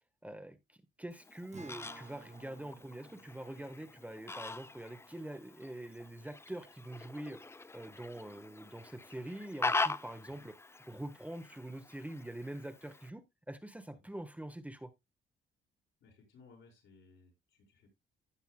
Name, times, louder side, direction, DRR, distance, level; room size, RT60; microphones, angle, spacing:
voice 1, 0.2-7.4 7.7-10.5 10.9-14.9, right 1 dB, 5° right, 1.3 m, -45 dB
Fowl, 1.1-13.1, left 3 dB, 15° left, 0.5 m, -42 dB
Acoustic guitar, 1.5-7.0, right 4 dB, 35° right, 1.6 m, -58 dB
voice 2, 16.0-17.9, left 4 dB, 75° left, 5.5 m, -61 dB
16.0 x 5.7 x 2.2 m
cardioid pair, 90°, 20 cm